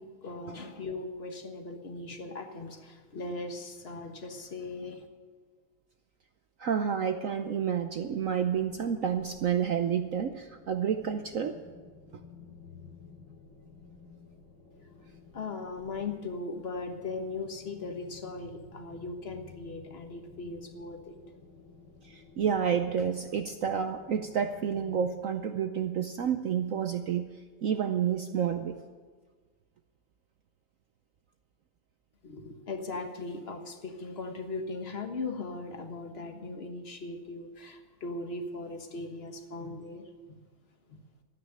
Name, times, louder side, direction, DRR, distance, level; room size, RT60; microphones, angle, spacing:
voice 1, 0.0-5.1 15.3-21.1 32.2-40.4 40.9-41.0, left 3 dB, 35° left, 5 dB, 1.4 m, -39 dB
voice 2, 6.6-11.6 22.0-27.3 27.6-28.8, right 8 dB, 75° right, 7 dB, 0.7 m, -29 dB
sound 1, 8.1-25.1, left 5 dB, 80° left, 4.1 m, -54 dB
13.0 x 9.5 x 8.9 m, 1.5 s
omnidirectional pair, 2.2 m